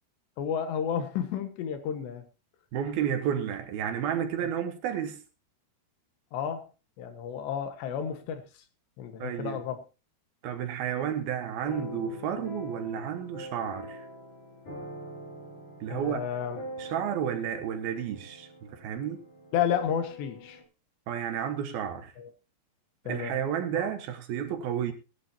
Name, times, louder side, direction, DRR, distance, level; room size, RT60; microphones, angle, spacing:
voice 1, 0.4-2.2 6.3-6.7 7.0-8.4 9.0-9.8 15.9-16.6 19.5-20.6 22.2-22.3 23.1-23.4 23.7-23.9, left 8 dB, 90° left, 3.7 m, -31 dB
voice 2, 2.7-5.2 9.2-9.6 10.4-14.1 15.8-16.2 16.8-19.2 21.1-22.1 23.1-24.9, right 9 dB, 70° right, 3.0 m, -31 dB
sound 1, 11.6-20.6, left 1 dB, 40° left, 5.7 m, -43 dB
19.0 x 11.5 x 2.8 m
omnidirectional pair, 4.8 m